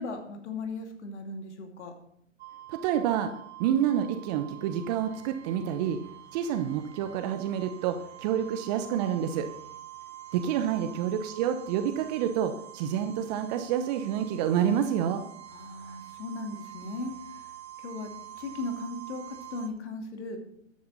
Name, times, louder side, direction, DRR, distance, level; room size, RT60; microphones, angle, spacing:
voice 1, 0.0-1.9 10.8-11.1 15.5-17.4 17.8-18.1 18.4-20.4, left 2 dB, 60° left, 3 dB, 2.6 m, -37 dB
sound 1, 2.4-19.7, right 12 dB, 55° right, 2.7 m, -47 dB
voice 2, 2.7-3.3 3.6-6.0 6.3-9.5 10.3-15.2, right 9 dB, 30° right, 8 dB, 0.9 m, -28 dB
12.5 x 9.6 x 4.1 m, 0.68 s
hypercardioid pair, 125°, 39 cm